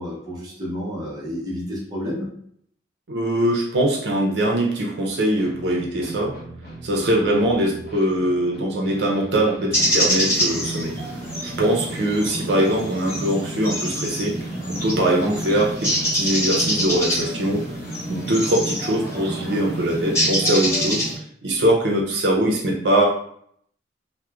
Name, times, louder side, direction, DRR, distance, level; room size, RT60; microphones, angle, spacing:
voice 1, 0.0-2.3 15.0-15.2, equal, 20° right, -5 dB, 0.7 m, -30 dB
voice 2, 3.1-6.4 6.8-11.0 11.4-14.4 14.7-17.6 18.1-21.1 21.4-23.1, right 1 dB, 75° right, -2 dB, 0.5 m, -22 dB
sound 1, 5.4-20.0, right 1 dB, 60° left, 0.6 m, -39 dB
sound 2, 9.7-21.1, equal, 15° left, 1.1 m, -25 dB
2.9 x 2.1 x 2.3 m, 0.65 s
head